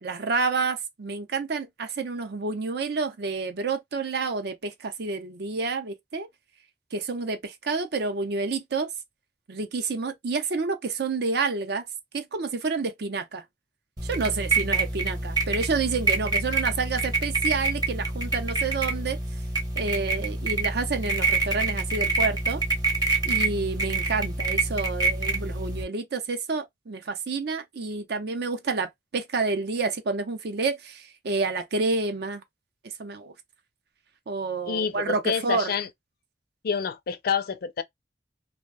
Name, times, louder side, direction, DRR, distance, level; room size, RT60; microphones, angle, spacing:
voice 1, 0.0-6.3 6.9-8.9 9.5-11.9 12.1-13.4 14.0-19.2 19.8-22.6 23.2-32.4 33.0-33.3 34.3-35.7, right 4 dB, 65° right, 0.6 m, -29 dB
sound 1, 14.0-25.8, right 3 dB, 25° right, 0.8 m, -27 dB
voice 2, 34.7-35.9 36.6-37.8, left 6 dB, 55° left, 0.4 m, -28 dB
2.5 x 2.1 x 3.2 m
head